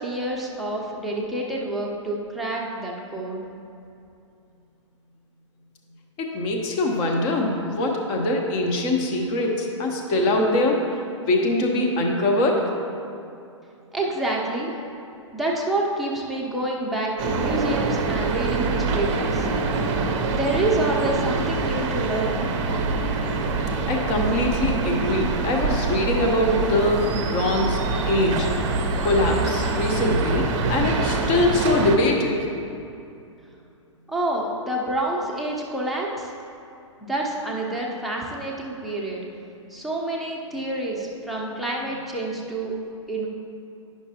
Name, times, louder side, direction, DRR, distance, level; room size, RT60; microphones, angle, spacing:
voice 1, 0.0-3.5 13.9-14.8 15.3-19.5 20.3-22.5 34.1-36.3 37.0-39.2 39.7-42.8 43.1-43.3, right 1 dB, ahead, -3 dB, 0.9 m, -28 dB
voice 2, 6.2-10.8 11.3-12.7 23.9-27.8 28.0-28.5 29.0-32.5, left 1 dB, 35° left, 1 dB, 1.0 m, -23 dB
sound 1, 17.2-32.0, right 3 dB, 35° right, 0.7 m, -25 dB
10.0 x 6.0 x 2.9 m, 2.6 s
figure-of-eight pair, 110°, 16 cm